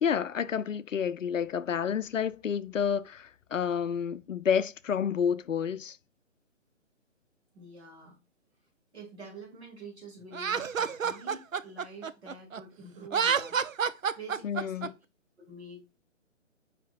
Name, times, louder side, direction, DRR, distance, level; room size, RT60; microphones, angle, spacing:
voice 1, 0.0-6.0 14.4-14.9, left 7 dB, 80° left, 0.5 m, -29 dB
voice 2, 7.5-8.2 8.9-13.6 14.2-14.9 15.5-16.0, right 2 dB, 55° right, 2.4 m, -47 dB
Laughter, 10.3-12.6 13.0-14.9, right 6 dB, 90° right, 0.6 m, -29 dB
5.0 x 4.5 x 2.4 m
figure-of-eight pair, 145°, 38 cm